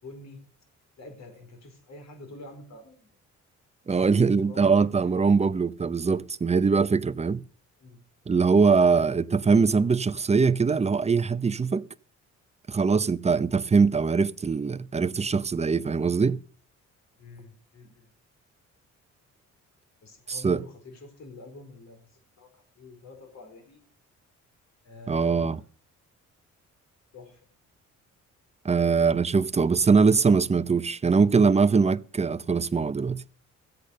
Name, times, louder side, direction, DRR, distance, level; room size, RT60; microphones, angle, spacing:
voice 1, 0.0-0.4 1.0-3.1 4.2-5.1 7.8-8.0 17.1-18.1 20.0-22.5 22.8-23.8 24.8-25.6 27.1-27.4, left 2 dB, 60° left, 4.6 m, -47 dB
voice 2, 3.9-7.4 8.3-11.9 12.7-16.4 20.3-20.6 25.1-25.6 28.6-33.2, right 5 dB, 20° right, 0.6 m, -22 dB
15.0 x 8.5 x 6.6 m
cardioid pair, 90°, 30 cm